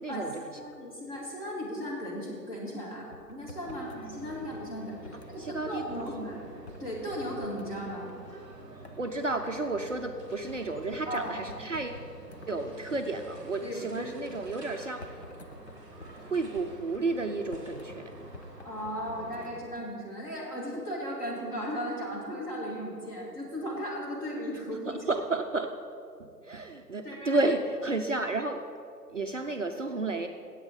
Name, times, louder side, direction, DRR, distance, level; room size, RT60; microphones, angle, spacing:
voice 1, 0.0-0.5 5.4-6.4 9.0-12.1 12.5-15.2 16.2-18.1 24.9-25.7 26.2-28.6 29.1-30.3, right 2 dB, 50° right, 5 dB, 0.6 m, -32 dB
voice 2, 0.6-6.4 6.8-8.1 11.1-11.3 13.6-14.1 18.6-25.0 27.0-27.4, equal, 20° left, -6 dB, 2.2 m, -36 dB
sound 1, 3.1-6.3 6.7-6.8 7.1-8.4 8.8-10.0 10.5-10.6 10.9-12.5 14.3-18.0 18.3-19.8, left 2 dB, 45° left, 0.6 m, -50 dB
sound 2, 3.6-19.6, right 2 dB, 5° right, 1.0 m, -48 dB
16.0 x 8.1 x 3.9 m, 2.4 s
figure-of-eight pair, 150°, 49 cm